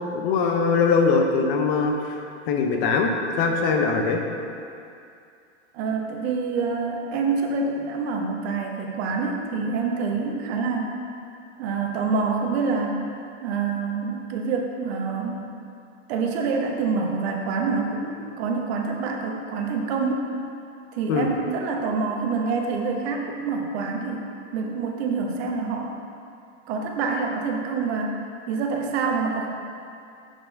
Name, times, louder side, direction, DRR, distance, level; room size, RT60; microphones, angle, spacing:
voice 1, 0.1-2.2 2.5-3.1 3.4-4.2 21.1-21.3, left 4 dB, 45° left, 2 dB, 0.9 m, -21 dB
voice 2, 5.7-10.9 11.6-13.0 13.4-15.4 16.1-20.3 20.9-24.3 24.5-25.9 26.7-29.5, right 4 dB, 60° right, 2 dB, 1.1 m, -26 dB
6.2 x 4.5 x 5.2 m, 2.5 s
hypercardioid pair, 115°, 37 cm